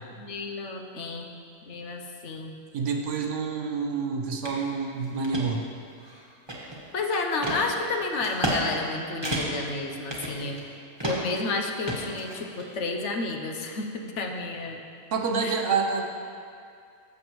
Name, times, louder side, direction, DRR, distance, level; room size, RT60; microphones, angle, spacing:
voice 1, 0.2-1.3 1.7-2.6 6.9-10.6 11.0-14.8 15.4-15.6, left 3 dB, 65° left, 2 dB, 1.1 m, -31 dB
voice 2, 2.7-5.6 15.1-16.1, right 5 dB, 70° right, 3 dB, 1.1 m, -28 dB
sound 1, 4.4-4.6 5.0-5.4 6.0-6.9 7.4-7.6 8.2-8.6 8.9-9.0 9.2-9.7 10.1-10.7 11.0-11.4 11.9-12.7, right 1 dB, 20° right, 1.4 m, -31 dB
15.0 x 6.9 x 3.1 m, 2.4 s
omnidirectional pair, 1.3 m